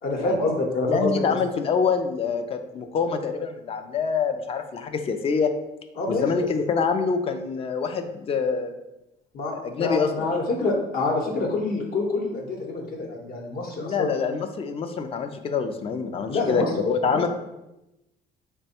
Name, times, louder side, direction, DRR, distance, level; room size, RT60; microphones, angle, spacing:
voice 1, 0.0-1.1 6.0-6.3 9.3-14.1 16.3-16.7 17.1-17.3, left 2 dB, 60° left, 0 dB, 0.9 m, -26 dB
voice 2, 0.9-5.5 6.1-8.7 9.5-10.1 13.8-17.3, left 5 dB, 35° left, 7 dB, 0.4 m, -26 dB
3.4 x 2.1 x 4.1 m, 0.93 s
cardioid pair, 110°, 17 cm